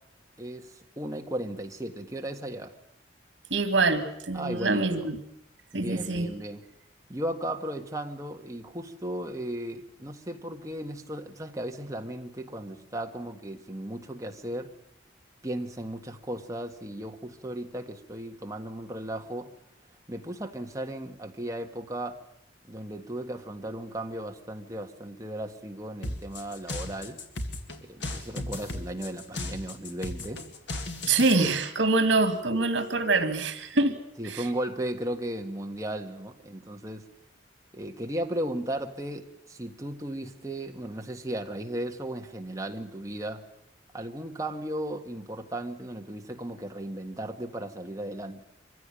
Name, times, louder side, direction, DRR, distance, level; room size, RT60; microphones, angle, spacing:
voice 1, 0.4-2.8 4.3-5.1 5.7-6.6 7.1-14.7 15.4-19.5 20.1-22.2 22.6-27.2 27.8-30.4 34.2-37.0 37.7-43.4 43.9-48.4, right 1 dB, 20° right, 3 dB, 1.7 m, -36 dB
voice 2, 3.5-5.2 5.7-6.3 31.1-34.0 34.2-34.5, right 3 dB, 80° right, 9 dB, 2.1 m, -25 dB
sound 1, 26.0-31.4, left 2 dB, 75° left, 2.3 m, -36 dB
23.5 x 16.0 x 9.9 m, 0.80 s
head